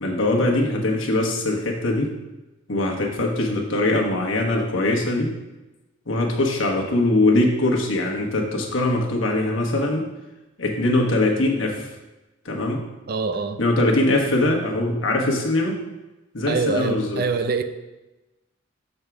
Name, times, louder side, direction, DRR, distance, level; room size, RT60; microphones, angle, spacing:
voice 1, 0.0-2.1 2.7-5.3 6.1-10.1 10.6-11.9 12.4-12.8 13.6-15.8 16.3-17.2, left 2 dB, 75° left, 0 dB, 1.2 m, -22 dB
voice 2, 13.1-13.6 16.5-17.6, right 4 dB, 50° right, 10 dB, 0.4 m, -24 dB
6.4 x 3.6 x 5.9 m, 1.0 s
head